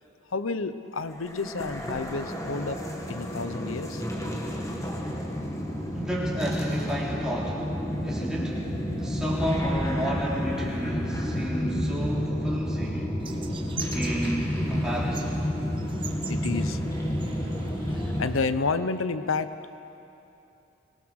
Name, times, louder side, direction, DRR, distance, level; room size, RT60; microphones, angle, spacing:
voice 1, 0.3-2.8 3.1-4.0 8.8-9.2 16.3-16.8 17.9-19.8, left 4 dB, 90° left, 12 dB, 0.9 m, -31 dB
sound 1, 1.1-18.3, equal, 15° left, 1.8 m, -30 dB
voice 2, 5.9-7.7 8.0-13.1 13.9-15.4, equal, 5° right, -5 dB, 3.4 m, -32 dB
sound 2, 13.2-18.5, right 4 dB, 25° right, 1.3 m, -42 dB
25.0 x 19.0 x 6.4 m, 2.8 s
head